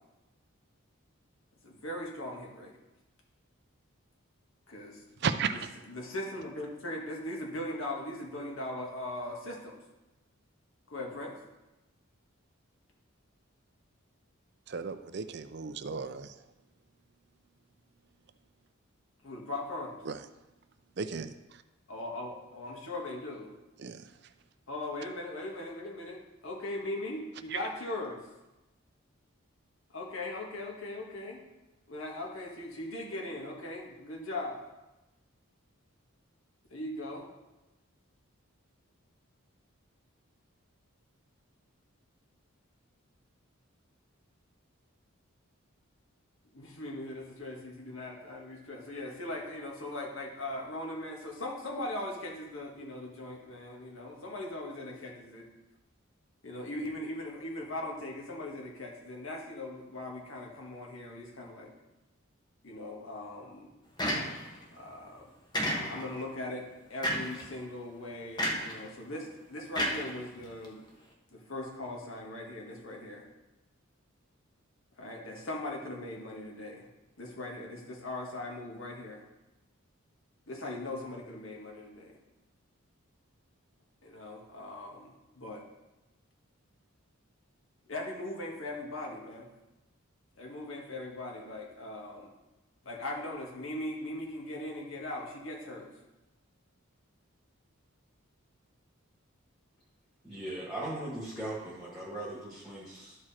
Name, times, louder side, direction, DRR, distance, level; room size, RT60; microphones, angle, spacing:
voice 1, 1.6-2.7 4.7-5.0 5.9-9.8 10.9-11.4 19.2-20.0 21.9-23.5 24.7-28.2 29.9-31.4 31.9-34.6 36.7-37.3 46.5-55.5 56.4-61.7 62.6-63.7 64.7-65.3 65.7-66.6 66.9-70.8 71.3-73.2 75.0-76.9 77.2-79.2 80.5-82.2 84.0-85.1 85.4-85.6 87.9-89.5 90.4-92.3 92.8-95.9, left 1 dB, 70° left, -1 dB, 1.8 m, -39 dB
voice 2, 5.2-5.7 14.7-16.3 20.1-20.2 21.0-21.3 23.8-24.0 27.5-27.6, right 5 dB, 50° right, 10 dB, 0.5 m, -34 dB
sound 1, 64.0-64.6 65.5-66.2 67.0-67.4 68.4-68.8 69.7-70.6, equal, 20° left, 1.0 m, -31 dB
voice 3, 100.2-103.2, right 1 dB, ahead, -8 dB, 1.7 m, -39 dB
12.5 x 4.8 x 4.3 m, 1.0 s
head